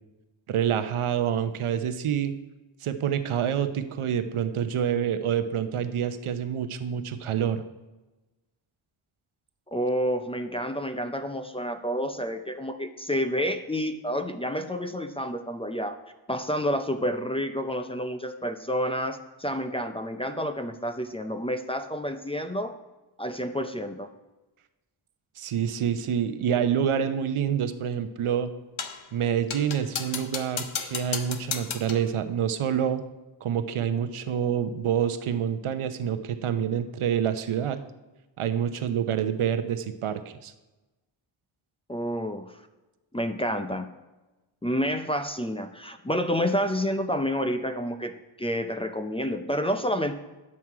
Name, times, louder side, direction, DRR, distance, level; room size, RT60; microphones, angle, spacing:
voice 1, 0.5-2.3 2.8-7.6 25.4-28.5 29.1-33.0 33.4-37.8 38.4-40.5, right 8 dB, 90° right, 9 dB, 0.8 m, -27 dB
voice 2, 9.7-16.0 16.3-22.7 23.2-24.1 41.9-42.5 43.1-43.8 44.6-50.1, equal, 10° left, 8 dB, 0.5 m, -29 dB
sound 1, 28.8-29.1 29.5-32.1, left 7 dB, 70° left, 0.9 m, -34 dB
9.7 x 7.5 x 4.6 m, 1.1 s
wide cardioid pair, 110°, 48 cm